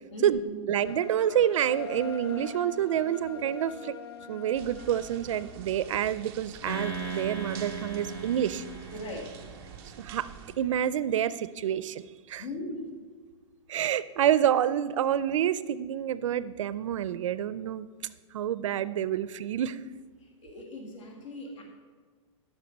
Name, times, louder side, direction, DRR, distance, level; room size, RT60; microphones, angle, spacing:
voice 1, 0.1-0.7 8.9-9.4 12.4-13.0 20.2-21.6, left 1 dB, 70° left, 1 dB, 1.8 m, -39 dB
voice 2, 0.7-3.9 4.3-8.6 10.0-10.3 10.6-12.0 12.3-12.4 13.7-17.9 18.3-19.8, right 10 dB, 70° right, 16 dB, 0.5 m, -28 dB
sound 1, 0.8-6.0, left 6 dB, 50° left, 0.6 m, -43 dB
sound 2, 4.5-10.6, right 8 dB, 15° right, 0.4 m, -47 dB
sound 3, 6.7-10.1, right 4 dB, 20° left, 1.2 m, -38 dB
11.5 x 6.5 x 5.3 m, 1.5 s
supercardioid pair, 180°, 17 cm